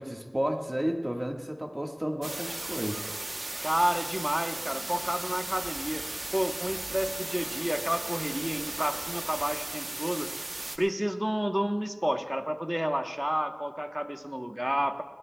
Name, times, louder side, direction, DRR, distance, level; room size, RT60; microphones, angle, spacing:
voice 1, 0.0-3.1, equal, 30° right, 2 dB, 1.6 m, -32 dB
sound 1, 2.2-10.8, right 2 dB, 85° right, 0.9 m, -36 dB
voice 2, 3.6-10.3 10.8-15.0, equal, 15° right, 6 dB, 1.0 m, -30 dB
21.0 x 18.0 x 2.3 m, 1.3 s
wide cardioid pair, 40°, 0 cm